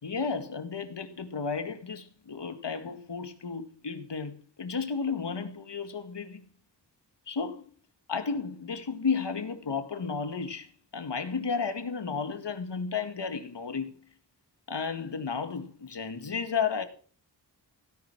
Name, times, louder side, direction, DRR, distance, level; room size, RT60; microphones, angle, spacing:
voice 1, 0.0-4.3 4.6-6.4 7.3-7.7 8.1-14.0 14.7-16.9, left 5 dB, 90° left, 2.1 m, -33 dB
17.0 x 10.5 x 6.1 m
wide cardioid pair, 95°, 41 cm